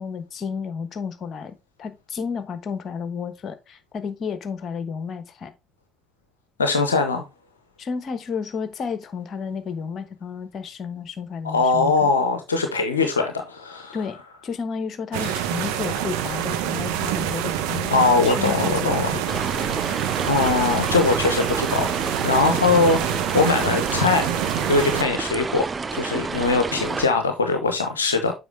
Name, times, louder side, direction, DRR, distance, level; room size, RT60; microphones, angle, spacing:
voice 1, 0.0-5.5 7.8-12.1 13.9-19.5, left 6 dB, 45° left, 1.2 m, -32 dB
voice 2, 6.6-7.2 11.5-14.0 15.2-15.3 17.9-19.2 19.8-21.9 22.2-24.3 24.7-25.7 25.9-28.3, left 3 dB, 85° left, 0.8 m, -21 dB
sound 1, 15.1-25.0, right 10 dB, 70° right, 0.9 m, -26 dB
sound 2, 19.3-27.1, right 4 dB, 30° right, 0.7 m, -29 dB
7.9 x 5.4 x 3.3 m
figure-of-eight pair, 50°, 0 cm